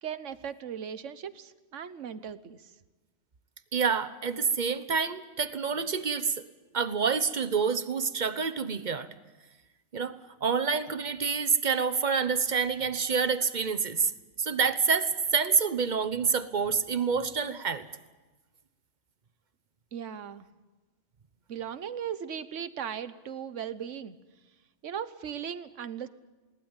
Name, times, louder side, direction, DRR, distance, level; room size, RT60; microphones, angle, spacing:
voice 1, 0.0-2.7 19.9-20.5 21.5-24.2 24.8-26.1, right 8 dB, 85° right, 14 dB, 1.3 m, -38 dB
voice 2, 3.7-6.4 6.7-9.1 9.9-14.1 14.4-17.9, right 5 dB, 40° right, 12 dB, 1.2 m, -27 dB
21.0 x 18.5 x 8.9 m, 1.2 s
omnidirectional pair, 1.2 m